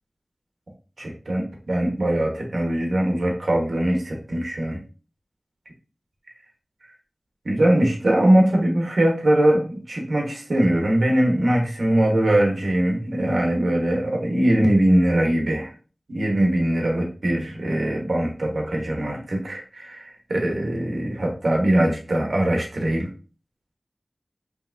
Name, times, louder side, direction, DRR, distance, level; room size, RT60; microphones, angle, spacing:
voice 1, 1.0-4.8 7.4-15.7 16.1-23.1, right 1 dB, 85° right, 0 dB, 1.1 m, -21 dB
5.5 x 3.3 x 2.5 m, 0.36 s
wide cardioid pair, 60°, 0 cm